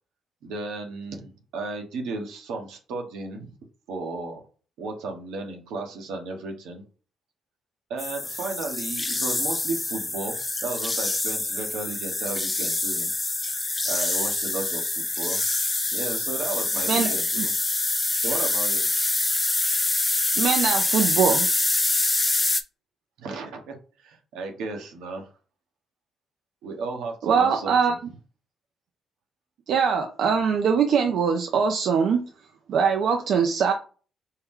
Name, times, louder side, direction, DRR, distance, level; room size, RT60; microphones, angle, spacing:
voice 1, 0.4-3.5 3.9-4.4 4.8-6.8 7.9-13.1 13.8-15.4 15.9-17.5 18.2-19.1 23.2-25.3 26.6-28.0, right 3 dB, 90° right, 3 dB, 1.0 m, -34 dB
sound 1, 8.0-22.6, left 2 dB, 20° left, 0.5 m, -25 dB
voice 2, 20.4-21.5 27.2-27.9 29.7-32.2 32.7-33.7, right 6 dB, 70° right, 4 dB, 0.5 m, -22 dB
4.6 x 2.2 x 3.6 m, 0.38 s
cardioid pair, 90°, 0 cm